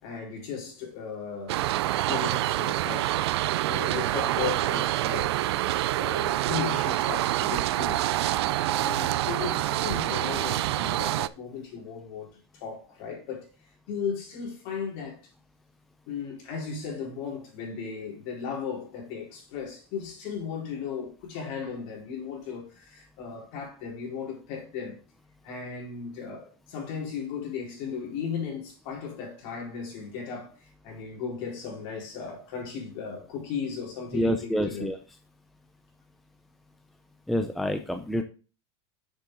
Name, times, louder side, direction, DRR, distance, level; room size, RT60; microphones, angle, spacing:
voice 1, 0.0-1.6 2.0-3.2 3.7-5.4 6.0-8.1 8.6-13.5 13.9-15.2 16.1-25.0 25.4-30.5 30.8-35.0, left 6 dB, 50° left, 4.4 m, -36 dB
sound 1, 1.5-11.3, right 15 dB, 85° right, 0.5 m, -26 dB
voice 2, 34.1-35.0 37.3-38.2, equal, ahead, 0.5 m, -27 dB
7.3 x 6.9 x 3.9 m
supercardioid pair, 165°, 13 cm